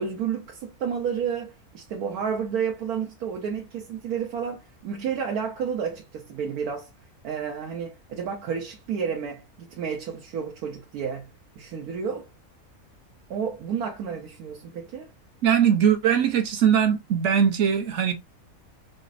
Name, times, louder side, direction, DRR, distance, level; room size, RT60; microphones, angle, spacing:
voice 1, 0.0-6.9 7.2-11.3 11.6-12.3 13.3-15.1, right 7 dB, 85° right, 1.2 m, -31 dB
voice 2, 15.4-18.1, right 8 dB, 60° right, 1.0 m, -21 dB
4.9 x 2.1 x 2.4 m
omnidirectional pair, 1.5 m